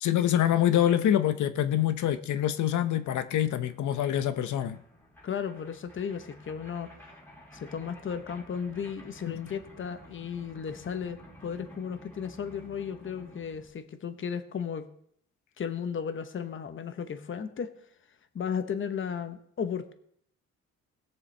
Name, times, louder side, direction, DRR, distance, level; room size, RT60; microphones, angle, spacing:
voice 1, 0.0-4.8 9.3-9.4, left 11 dB, 75° left, 0.8 m, -25 dB
sound 1, 2.6-2.7 2.8-13.7, equal, 5° left, 2.8 m, -52 dB
voice 2, 5.2-6.9 7.5-14.9 15.6-17.7 18.3-19.9, left 7 dB, 40° left, 1.0 m, -35 dB
19.5 x 7.0 x 3.4 m
cardioid pair, 90°, 30 cm